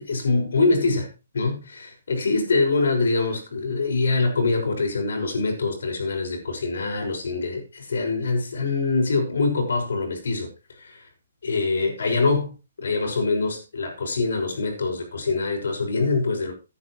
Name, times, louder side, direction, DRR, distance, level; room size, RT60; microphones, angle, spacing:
voice 1, 0.0-11.0 11.4-12.5 12.8-16.5, left 3 dB, 75° left, 6.2 m, -24 dB
15.0 x 9.9 x 3.2 m
hypercardioid pair, 165°, 0 cm